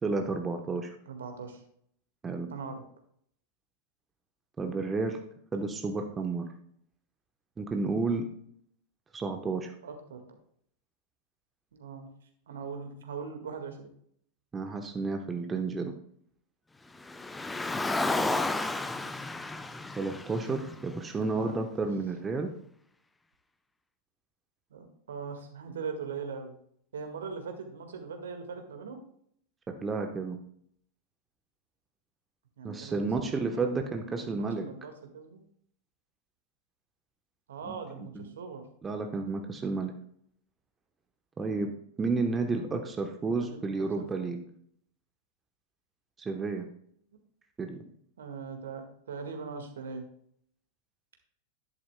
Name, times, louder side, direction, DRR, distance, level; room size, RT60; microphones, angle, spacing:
voice 1, 0.0-0.9 2.2-2.5 4.6-5.2 5.5-6.4 7.6-8.2 9.1-9.7 14.5-15.9 20.0-22.5 29.7-30.4 32.6-34.6 37.6-38.2 38.8-39.9 41.4-41.7 42.0-44.4 46.2-46.7 47.6-47.8, right 3 dB, 15° right, 5 dB, 1.0 m, -31 dB
voice 2, 1.1-1.6 2.5-2.8 9.8-10.2 11.7-12.1 12.5-13.9 21.4-21.5 24.7-26.6 26.9-29.0 32.6-35.4 37.5-38.6 42.4-42.8 43.3-44.4 48.2-50.0, right 5 dB, 65° right, 5 dB, 1.7 m, -41 dB
Car, 17.0-21.4, left 2 dB, 10° left, 0.6 m, -32 dB
12.0 x 10.5 x 2.2 m, 0.65 s
figure-of-eight pair, 90°, 0 cm